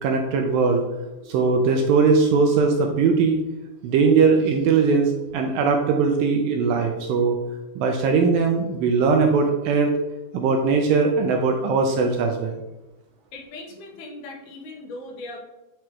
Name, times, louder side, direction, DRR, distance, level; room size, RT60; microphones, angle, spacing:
voice 1, 0.0-0.8 1.3-3.4 3.8-7.4 7.8-9.9 10.3-12.6, right 4 dB, 80° right, 3 dB, 2.2 m, -20 dB
voice 2, 13.3-15.4, left 2 dB, 80° left, 0 dB, 3.0 m, -38 dB
9.2 x 4.5 x 3.1 m, 1.0 s
omnidirectional pair, 4.6 m